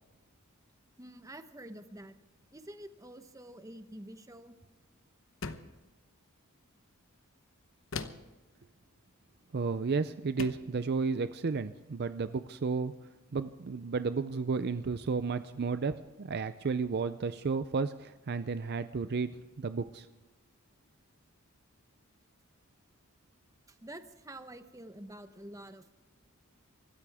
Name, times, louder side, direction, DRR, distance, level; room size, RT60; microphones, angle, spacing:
voice 1, 1.0-2.2 2.5-4.6 23.7-25.9, right 1 dB, 15° right, 9 dB, 1.0 m, -48 dB
sound 1, 5.4-5.8 7.9-8.4 9.7-9.8 10.4-10.7, left 4 dB, 60° left, 1.0 m, -40 dB
voice 2, 9.5-12.9 13.3-19.3 19.6-20.1, right 4 dB, 45° right, 12 dB, 0.5 m, -32 dB
25.0 x 13.5 x 3.5 m, 1.2 s
head